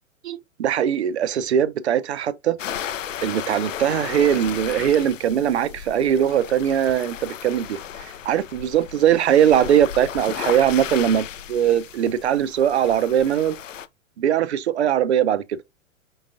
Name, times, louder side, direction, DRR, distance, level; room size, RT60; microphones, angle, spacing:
voice 1, 0.2-2.6 3.2-7.8 8.3-13.6 14.2-15.4, right 9 dB, 55° right, 0.5 m, -20 dB
sound 1, 2.6-13.9, left 9 dB, 70° left, 0.5 m, -35 dB
4.6 x 3.8 x 2.5 m
figure-of-eight pair, 110°, 39 cm